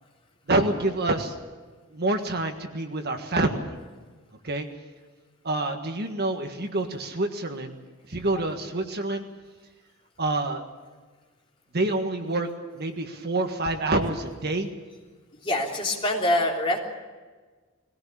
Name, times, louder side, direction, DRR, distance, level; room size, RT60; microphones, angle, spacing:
voice 1, 0.5-1.4 1.9-3.7 4.4-4.7 5.4-7.7 8.1-9.2 10.2-10.6 11.7-14.7, right 2 dB, 50° right, 5 dB, 1.6 m, -27 dB
voice 2, 15.4-16.8, left 1 dB, 25° left, -1 dB, 3.5 m, -24 dB
21.5 x 17.0 x 8.7 m, 1.4 s
head